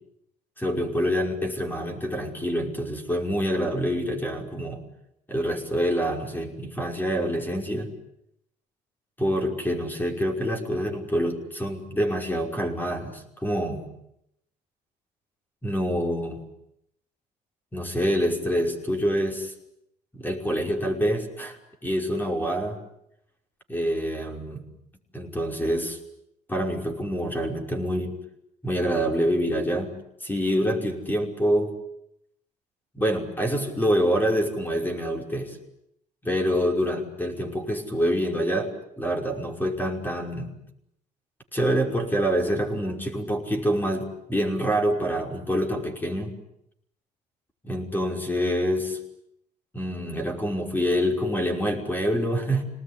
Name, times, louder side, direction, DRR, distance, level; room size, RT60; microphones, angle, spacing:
voice 1, 0.6-4.8 5.3-7.9 9.2-13.9 15.6-16.4 17.7-19.5 20.1-22.8 23.7-24.6 25.1-26.0 26.5-28.2 28.6-30.0 30.2-31.7 32.9-35.6 36.2-40.5 41.5-46.4 47.6-49.0 49.7-52.6, equal, 10° left, 3 dB, 5.6 m, -26 dB
27.0 x 19.5 x 9.9 m, 0.79 s
cardioid pair, 110°, 17 cm